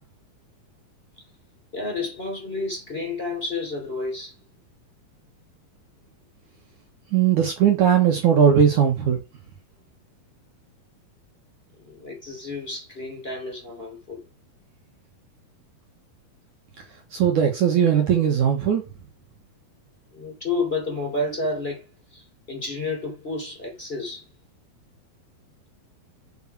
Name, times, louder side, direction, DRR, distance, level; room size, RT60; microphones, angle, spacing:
voice 1, 1.7-4.4 11.8-14.2 20.1-24.3, left 3 dB, 15° left, 3.5 m, -30 dB
voice 2, 7.1-9.2 17.1-18.8, right 8 dB, 60° right, 2.5 m, -19 dB
8.0 x 5.6 x 6.0 m
omnidirectional pair, 4.5 m